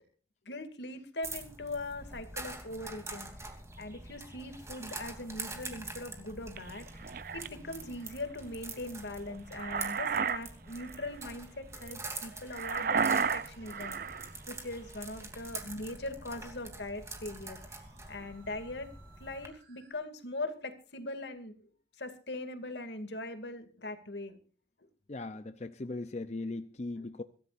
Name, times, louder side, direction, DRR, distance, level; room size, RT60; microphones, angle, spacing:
voice 1, 0.5-3.3 3.8-7.1 7.3-14.0 14.5-17.6 18.1-18.9 19.2-21.5 22.0-24.4 27.0-27.1, left 2 dB, 80° left, 2.5 m, -41 dB
sound 1, 1.2-19.5, right 3 dB, 15° right, 3.0 m, -45 dB
sound 2, 6.6-7.5 9.3-10.4 10.7-11.0 12.5-14.3, right 6 dB, 55° right, 0.6 m, -32 dB
Musical instrument, 11.5-19.9, right 3 dB, 85° right, 5.4 m, -61 dB
voice 2, 25.1-27.2, left 2 dB, 40° left, 0.7 m, -38 dB
24.0 x 14.0 x 2.6 m
head